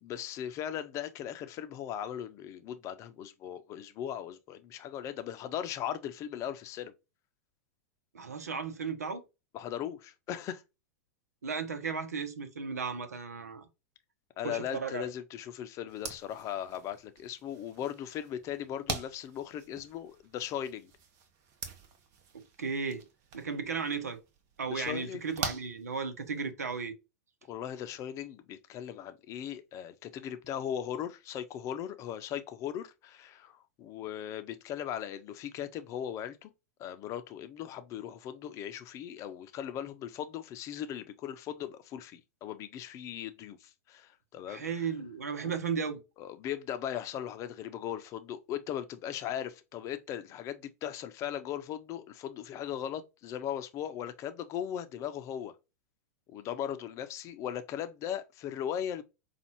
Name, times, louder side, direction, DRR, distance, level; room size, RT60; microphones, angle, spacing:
voice 1, 0.0-6.9 9.5-10.6 14.4-20.9 24.7-25.3 27.5-36.5 36.8-44.6 46.2-55.5 56.3-59.0, left 10 dB, 40° left, 0.6 m, -38 dB
voice 2, 8.1-9.2 11.4-13.6 14.4-15.1 22.6-23.0 23.3-24.2 24.6-26.9 44.5-46.0, right 5 dB, 85° right, 0.8 m, -35 dB
sound 1, 15.9-26.5, right 6 dB, 45° right, 1.0 m, -44 dB
5.2 x 2.5 x 2.9 m
hypercardioid pair, 100°, 8 cm